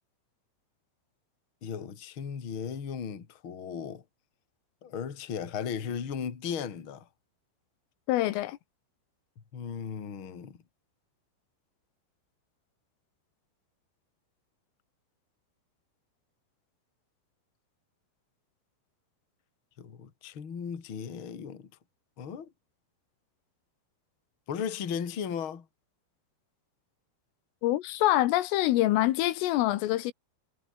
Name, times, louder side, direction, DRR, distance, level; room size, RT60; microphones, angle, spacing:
voice 1, 1.6-4.0 4.8-7.1 9.5-10.6 19.8-21.7 22.2-22.5 24.5-25.7, left 7 dB, 35° left, 2.3 m, -36 dB
voice 2, 8.1-8.6 27.6-30.1, left 15 dB, 80° left, 3.7 m, -25 dB
omnidirectional pair, 5.9 m